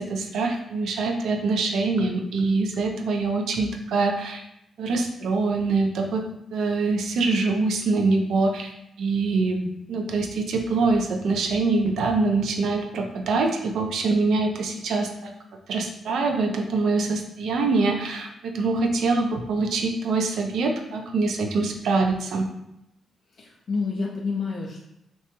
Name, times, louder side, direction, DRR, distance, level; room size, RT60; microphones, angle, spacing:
voice 1, 0.0-4.4 4.8-8.7 9.0-15.3 15.7-22.5, right 3 dB, 80° right, 3 dB, 0.3 m, -24 dB
voice 2, 23.3-24.8, left 4 dB, 60° left, -2 dB, 0.4 m, -29 dB
2.8 x 2.2 x 2.9 m, 0.84 s
cardioid pair, 75°, 0 cm